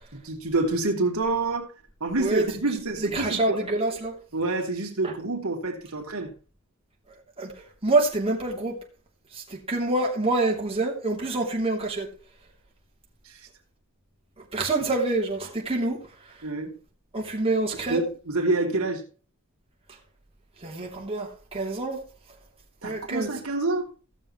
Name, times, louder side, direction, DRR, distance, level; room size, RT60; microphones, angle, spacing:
voice 1, 0.1-1.7 2.0-3.6 4.3-6.3 13.2-13.5 16.4-16.8 17.9-19.0 22.8-23.9, right 2 dB, 75° right, 2.8 m, -27 dB
voice 2, 3.0-4.2 5.0-5.1 7.4-8.8 9.3-12.1 14.5-16.0 17.1-18.0 20.6-22.0 22.8-23.3, right 2 dB, 25° right, 3.1 m, -26 dB
16.5 x 7.3 x 3.1 m
head